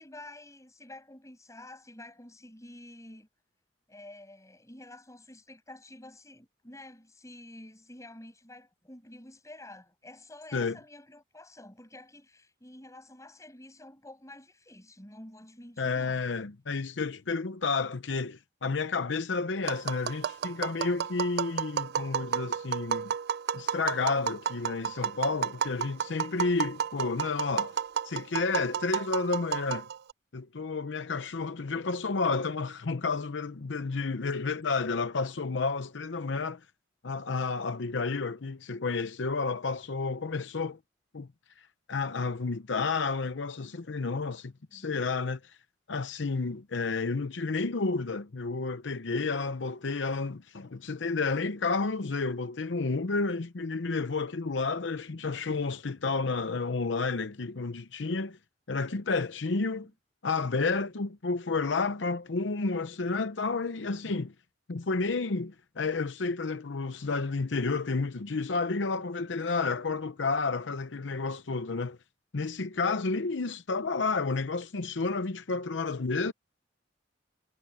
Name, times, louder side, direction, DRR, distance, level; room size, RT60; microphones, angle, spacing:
voice 1, 0.0-3.3 3.9-16.2 44.7-45.0 59.6-59.9, left 1 dB, 15° left, 7.7 m, -49 dB
voice 2, 15.8-23.1 23.5-27.8 28.0-29.9 30.3-36.6 37.0-40.8 41.1-41.3 41.6-45.6 45.9-58.4 58.7-59.9 60.2-64.3 64.7-72.0 72.3-76.3, left 4 dB, 75° left, 0.7 m, -31 dB
Tap, 19.7-30.1, right 8 dB, 60° right, 0.4 m, -32 dB
head